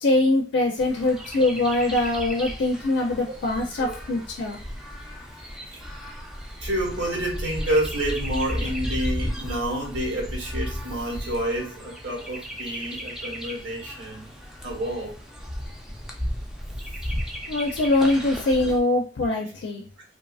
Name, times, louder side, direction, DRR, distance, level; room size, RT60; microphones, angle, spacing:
voice 1, 0.0-4.6 17.5-19.8, left 2 dB, 70° left, 0.4 m, -23 dB
Chirp tweet, 0.8-18.8, equal, 5° right, 0.4 m, -34 dB
voice 2, 6.6-14.3 14.6-15.2, right 1 dB, 70° right, 1.1 m, -29 dB
2.7 x 2.4 x 2.3 m
head